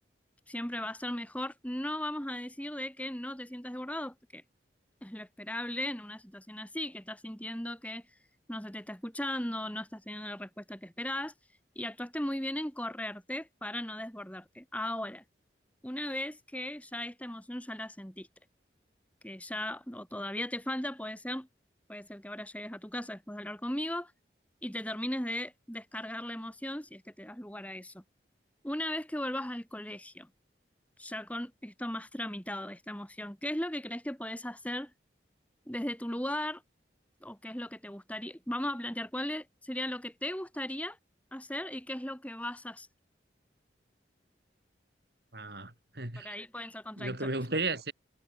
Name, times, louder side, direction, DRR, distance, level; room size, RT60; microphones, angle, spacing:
voice 1, 0.5-4.4 5.0-8.0 8.5-11.3 11.7-15.2 15.8-18.3 19.2-21.5 21.9-24.1 24.6-28.0 28.6-30.3 31.0-34.9 35.7-36.6 37.2-41.0 41.3-42.9 46.2-47.3, left 1 dB, 10° left, 3.5 m, -37 dB
voice 2, 45.3-46.3 47.0-47.9, right 2 dB, 60° right, 6.6 m, -34 dB
head